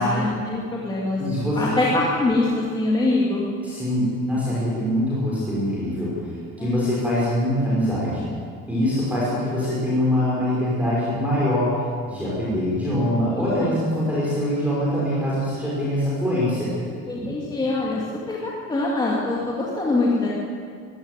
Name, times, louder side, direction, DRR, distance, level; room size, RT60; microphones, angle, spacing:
voice 1, 0.0-1.2 1.6-3.4 6.6-7.2 13.3-13.7 17.1-18.0 18.3-20.3, left 2 dB, 15° left, -5 dB, 2.7 m, -24 dB
voice 2, 1.2-1.8 3.6-6.3 6.6-8.2 8.7-16.7 17.2-17.3, equal, 5° right, -8 dB, 5.4 m, -23 dB
22.5 x 15.0 x 9.3 m, 2.2 s
cardioid pair, 180°, 31 cm